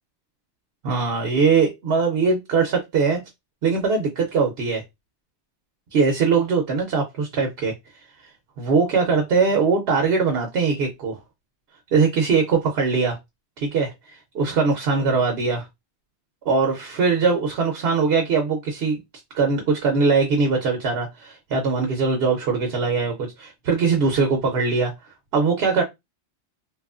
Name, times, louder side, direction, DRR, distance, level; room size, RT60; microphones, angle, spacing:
voice 1, 0.8-3.2 3.6-4.8 5.9-7.7 8.6-11.2 11.9-13.2 13.6-15.6 16.5-19.0 19.3-24.9 25.3-25.8, right 4 dB, 65° right, 0.8 m, -21 dB
2.9 x 2.3 x 2.4 m
omnidirectional pair, 1.2 m